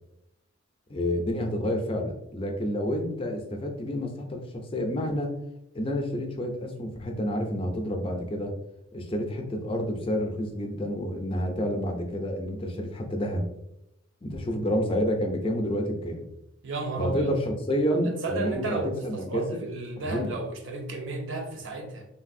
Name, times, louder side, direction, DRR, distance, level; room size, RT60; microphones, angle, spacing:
voice 1, 0.9-5.4 5.7-8.5 8.9-13.5 14.2-16.3 17.0-19.7 20.0-20.4, equal, 25° left, 3 dB, 0.4 m, -29 dB
voice 2, 16.6-17.3 18.0-22.1, right 2 dB, 65° right, 3 dB, 0.6 m, -33 dB
3.2 x 2.5 x 2.5 m, 0.80 s
head